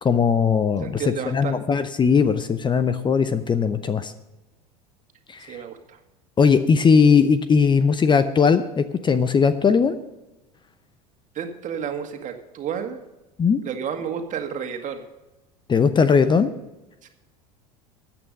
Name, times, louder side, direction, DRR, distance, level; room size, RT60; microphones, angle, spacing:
voice 1, 0.0-4.1 5.3-5.6 6.4-10.0 13.4-13.6 15.7-16.5, left 6 dB, 25° left, 12 dB, 0.8 m, -19 dB
voice 2, 0.8-1.8 5.5-6.0 11.4-13.0 13.6-15.0 17.0-17.1, right 7 dB, 40° right, 5 dB, 2.0 m, -31 dB
14.0 x 8.8 x 5.3 m, 1.0 s
hypercardioid pair, 80°, 20 cm